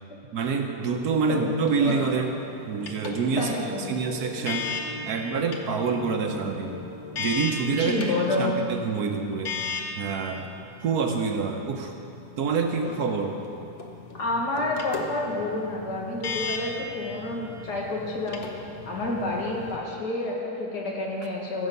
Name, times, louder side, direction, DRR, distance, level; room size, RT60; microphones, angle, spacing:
voice 1, 0.3-2.4 2.7-3.5 3.9-4.7 5.0-6.8 7.2-9.5 10.0-10.4 10.8-11.9 12.4-13.4, right 5 dB, 65° right, 4 dB, 1.3 m, -27 dB
sound 1, 1.0-8.9, left 1 dB, 10° right, 1.0 m, -42 dB
sound 2, 1.2-19.8, left 4 dB, 50° left, 1.1 m, -37 dB
voice 2, 3.4-3.8 7.8-8.6 14.1-18.4 18.9-21.7, left 2 dB, 70° left, -2 dB, 2.2 m, -29 dB
15.0 x 7.3 x 5.3 m, 2.8 s
omnidirectional pair, 1.8 m